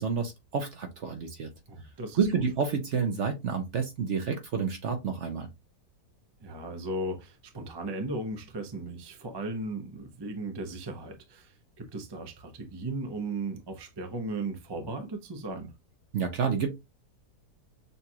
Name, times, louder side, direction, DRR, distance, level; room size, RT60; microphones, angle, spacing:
voice 1, 0.0-1.5 2.2-5.5 16.1-16.7, right 6 dB, 55° right, 0.9 m, -29 dB
voice 2, 1.7-2.4 6.4-15.7, right 2 dB, 25° right, 0.5 m, -36 dB
6.8 x 2.4 x 2.8 m
omnidirectional pair, 1.8 m